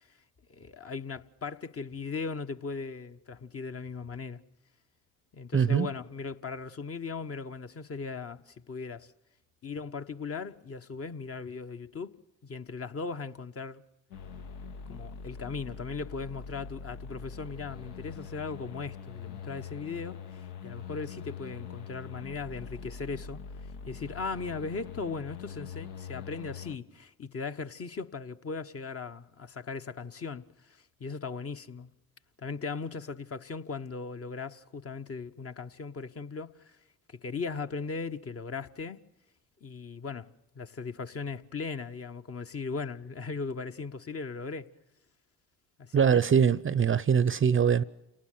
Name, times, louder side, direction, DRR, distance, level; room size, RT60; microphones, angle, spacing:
voice 1, 0.5-4.4 5.3-9.1 9.6-12.2 12.4-13.8 14.9-23.4 23.9-31.9 32.4-36.8 37.1-39.0 39.6-40.3 40.5-44.7 45.8-46.3, left 4 dB, 30° left, 1.2 m, -38 dB
voice 2, 5.5-5.9 45.9-47.8, right 7 dB, 30° right, 0.8 m, -23 dB
sound 1, 14.1-26.8, left 6 dB, 65° left, 1.4 m, -43 dB
29.0 x 19.0 x 7.6 m
hypercardioid pair, 60°, 43 cm